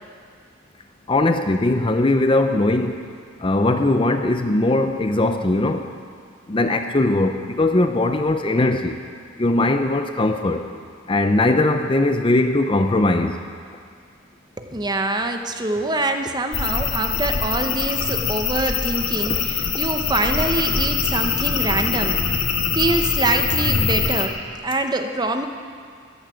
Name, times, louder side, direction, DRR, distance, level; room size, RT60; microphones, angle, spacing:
voice 1, 1.1-3.0 3.4-5.9 6.5-9.0 9.4-10.7 11.1-13.4 19.3-19.4, left 2 dB, 25° left, 7 dB, 0.5 m, -20 dB
voice 2, 14.6-22.2 22.7-24.4 24.6-25.5, right 2 dB, 20° right, 6 dB, 0.7 m, -24 dB
sound 1, 16.5-24.3, left 5 dB, 70° left, 1.7 m, -23 dB
13.5 x 11.5 x 7.6 m, 2.2 s
head